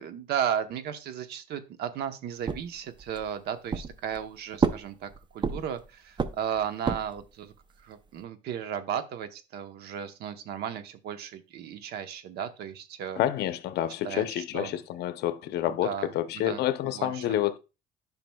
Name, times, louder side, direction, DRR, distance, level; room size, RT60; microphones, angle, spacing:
voice 1, 0.0-7.5 7.8-13.2 14.0-14.8 15.7-16.6 16.9-17.2, right 9 dB, 75° right, 1.0 m, -35 dB
sound 1, 2.5-3.3 3.7-4.3 4.6-5.8 6.2-7.3, right 5 dB, 25° right, 0.6 m, -30 dB
voice 2, 13.2-17.6, left 12 dB, 75° left, 0.7 m, -28 dB
10.5 x 5.8 x 2.3 m
cardioid pair, 110°, 17 cm